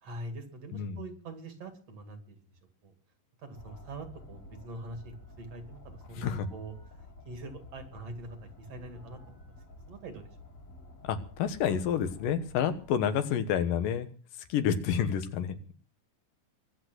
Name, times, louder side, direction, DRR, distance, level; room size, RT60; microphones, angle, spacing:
voice 1, 0.0-2.4 2.8-2.9 3.4-6.7 7.3-9.4 9.9-10.3, right 2 dB, 50° right, 7 dB, 3.0 m, -44 dB
sound 1, 3.5-13.2, left 2 dB, 45° left, 3.0 m, -51 dB
voice 2, 6.2-6.5 11.0-14.1 14.5-15.7, left 8 dB, 85° left, 10 dB, 3.0 m, -29 dB
23.0 x 8.1 x 6.1 m, 0.43 s
omnidirectional pair, 3.8 m